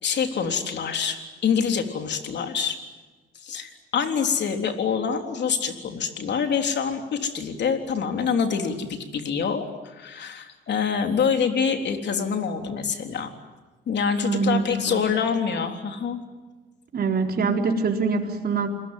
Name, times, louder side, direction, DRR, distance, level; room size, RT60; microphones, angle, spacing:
voice 1, 0.0-2.8 3.4-13.3 13.9-16.2, left 6 dB, 60° left, 5 dB, 3.7 m, -26 dB
voice 2, 14.2-15.1 16.9-18.7, right 4 dB, 50° right, 2 dB, 4.3 m, -24 dB
28.0 x 21.0 x 9.4 m, 1.3 s
cardioid pair, 90°, 20 cm